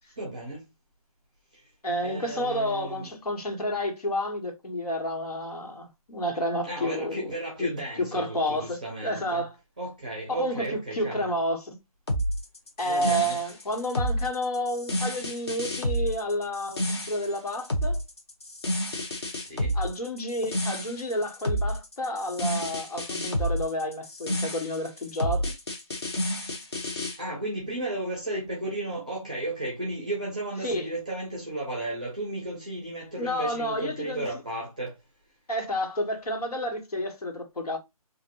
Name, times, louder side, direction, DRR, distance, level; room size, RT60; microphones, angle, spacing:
voice 1, 0.2-0.7 1.5-1.6 2.0-3.1 6.6-9.4 9.8-11.3 12.8-13.4 19.3-19.8 27.2-34.9, right 1 dB, 10° right, 0.6 m, -34 dB
voice 2, 1.8-7.3 7.6-9.6 10.3-11.8 12.8-18.0 19.7-25.6 30.6-30.9 33.2-34.2 35.5-37.8, equal, 80° left, 1.4 m, -30 dB
sound 1, 12.1-27.2, equal, 45° left, 0.9 m, -30 dB
3.5 x 2.5 x 3.0 m
hypercardioid pair, 180°, 19 cm